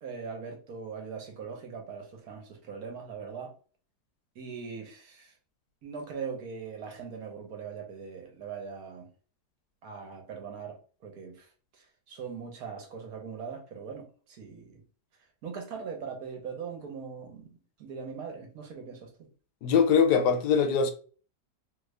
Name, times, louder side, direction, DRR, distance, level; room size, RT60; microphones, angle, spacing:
voice 1, 0.0-3.5 4.3-5.3 5.8-9.1 9.8-11.5 11.7-14.8 15.4-17.5 17.8-19.1, right 6 dB, 65° right, 1.3 m, -40 dB
voice 2, 19.6-20.9, left 6 dB, 85° left, 1.2 m, -22 dB
3.1 x 2.5 x 3.2 m
omnidirectional pair, 1.8 m